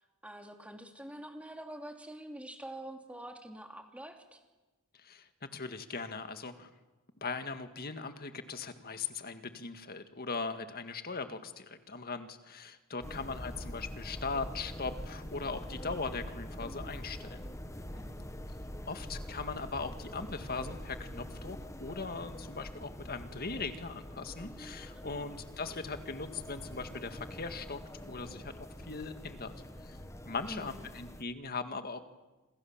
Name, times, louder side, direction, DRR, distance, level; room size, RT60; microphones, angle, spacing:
voice 1, 0.2-4.4 13.1-13.5 18.0-18.3 24.9-25.3 30.5-30.9, right 1 dB, 5° right, 4 dB, 2.9 m, -46 dB
voice 2, 4.9-6.7 7.2-17.5 18.2-18.3 18.9-27.8 28.1-29.5 29.8-30.0 30.3-32.0, left 4 dB, 45° left, 9 dB, 1.9 m, -39 dB
sound 1, 13.0-31.2, equal, 15° left, 1.4 m, -44 dB
28.0 x 27.0 x 7.4 m, 1.2 s
head